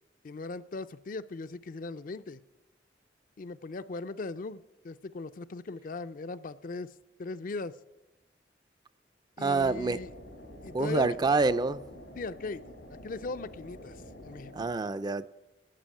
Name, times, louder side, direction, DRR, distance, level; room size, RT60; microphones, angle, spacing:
voice 1, 0.2-2.4 3.4-6.9 7.2-7.8 9.4-10.1 10.6-11.2 12.2-12.6 12.9-14.7, left 3 dB, 50° left, 0.5 m, -39 dB
voice 2, 9.4-10.0 10.7-11.8 14.5-15.3, right 3 dB, 25° right, 0.4 m, -27 dB
sound 1, 9.5-14.7, equal, 85° left, 2.6 m, -48 dB
12.5 x 8.2 x 8.8 m
head